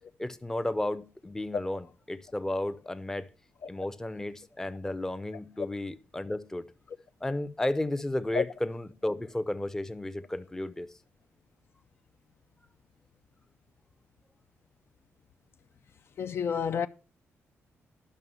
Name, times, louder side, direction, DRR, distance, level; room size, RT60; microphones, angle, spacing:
voice 1, 0.2-3.3 3.7-6.7 7.2-10.9, left 1 dB, 10° left, 0.6 m, -33 dB
voice 2, 16.2-16.9, left 6 dB, 55° left, 0.4 m, -29 dB
11.0 x 6.0 x 5.5 m
cardioid pair, 120°, 5 cm